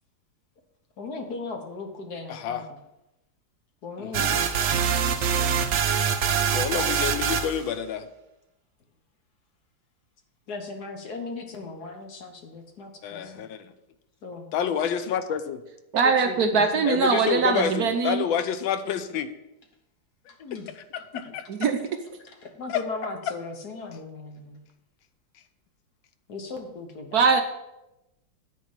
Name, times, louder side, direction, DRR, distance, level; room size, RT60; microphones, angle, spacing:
voice 1, 1.0-2.8 3.8-4.5 5.2-5.3 10.5-13.4 14.2-14.5 16.0-16.9 20.4-20.7 21.1-21.3 21.7-21.8 22.3-24.6 26.3-27.2, left 3 dB, 55° left, 4 dB, 1.8 m, -38 dB
voice 2, 2.3-2.7 4.0-4.4 6.5-8.1 13.0-13.7 14.5-15.6 16.8-19.3 20.9-21.4 22.7-22.8, left 8 dB, 85° left, 10 dB, 1.5 m, -28 dB
sound 1, 4.1-7.6, right 7 dB, 90° right, 0.6 m, -24 dB
voice 3, 15.9-18.3 21.6-21.8 27.1-27.4, right 5 dB, 60° right, 6 dB, 1.1 m, -21 dB
9.4 x 4.7 x 7.4 m, 0.90 s
omnidirectional pair, 2.1 m